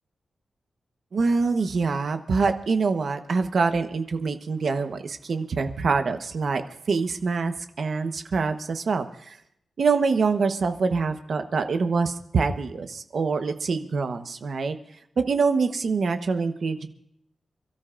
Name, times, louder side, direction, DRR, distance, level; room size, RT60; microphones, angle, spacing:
voice 1, 1.1-6.6 6.9-9.4 9.8-14.8 15.2-16.9, right 4 dB, 55° right, 7 dB, 1.1 m, -25 dB
28.5 x 13.5 x 2.6 m, 0.73 s
wide cardioid pair, 160°, 0 cm